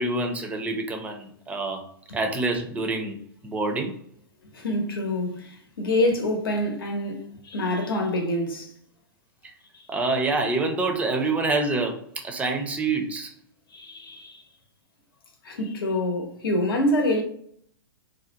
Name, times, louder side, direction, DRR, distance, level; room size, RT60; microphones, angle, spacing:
voice 1, 0.0-1.9 2.1-3.2 3.4-4.0 9.9-13.3, right 3 dB, 10° right, 0.4 m, -26 dB
voice 2, 4.5-8.7 13.7-14.4 15.4-17.2, left 1 dB, 75° left, 0.8 m, -26 dB
2.5 x 2.1 x 2.8 m
hypercardioid pair, 120°, 12 cm